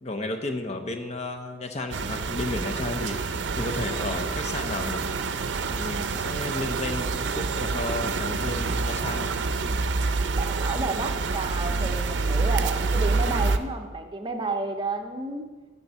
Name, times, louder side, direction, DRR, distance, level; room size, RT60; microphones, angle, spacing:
voice 1, 0.0-3.2 3.6-5.0 5.7-9.4, left 2 dB, 35° left, 5 dB, 0.6 m, -33 dB
sound 1, 1.9-13.6, right 4 dB, 75° right, 0.5 m, -27 dB
voice 2, 10.4-15.4, right 3 dB, 25° right, 5 dB, 0.6 m, -31 dB
7.0 x 6.9 x 5.6 m, 1.3 s
head